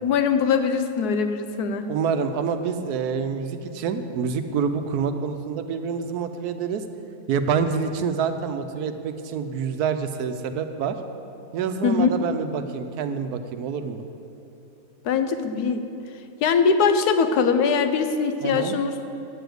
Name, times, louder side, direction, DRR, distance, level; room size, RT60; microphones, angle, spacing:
voice 1, 0.0-1.9 11.8-12.1 15.0-15.9 16.4-19.1, left 5 dB, 85° left, 8 dB, 1.3 m, -22 dB
voice 2, 1.9-6.8 7.3-11.0 11.5-14.0 18.4-18.7, right 6 dB, 80° right, 9 dB, 1.2 m, -27 dB
9.6 x 7.0 x 7.8 m, 3.0 s
omnidirectional pair, 1.6 m